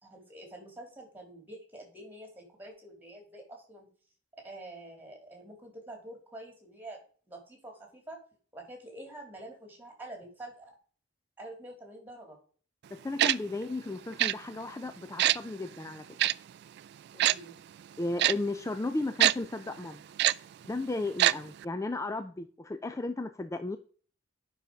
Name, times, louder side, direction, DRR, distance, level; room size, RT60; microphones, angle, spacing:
voice 1, 0.0-3.9 4.4-7.0 7.3-8.2 8.5-10.7 11.4-12.4 17.1-17.5, right 1 dB, 10° right, 1 dB, 2.9 m, -47 dB
voice 2, 12.9-16.0 18.0-20.0 20.6-23.8, left 2 dB, 15° left, 9 dB, 0.4 m, -34 dB
Tick-tock, 13.2-13.3 14.2-14.3 15.2-15.4 16.2-16.3 17.2-17.3 18.2-18.3 19.2-19.3 20.2-20.3 21.2-21.3 21.6-21.7, right 13 dB, 55° right, 0.3 m, -23 dB
9.9 x 5.7 x 5.1 m, 0.43 s
head